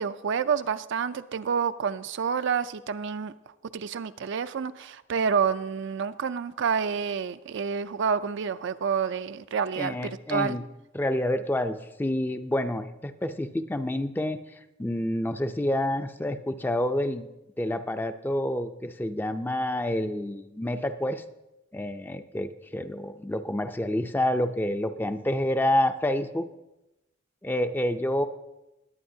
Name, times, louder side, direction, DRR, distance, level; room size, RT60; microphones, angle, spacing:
voice 1, 0.0-3.3 3.7-10.0 10.3-10.6, right 6 dB, 65° right, 12 dB, 0.4 m, -28 dB
voice 2, 9.8-10.6 10.9-14.4 14.8-17.3 17.6-21.2 21.7-26.5 27.4-28.3, left 1 dB, 10° left, 9 dB, 0.4 m, -28 dB
20.5 x 8.6 x 2.7 m, 0.95 s
head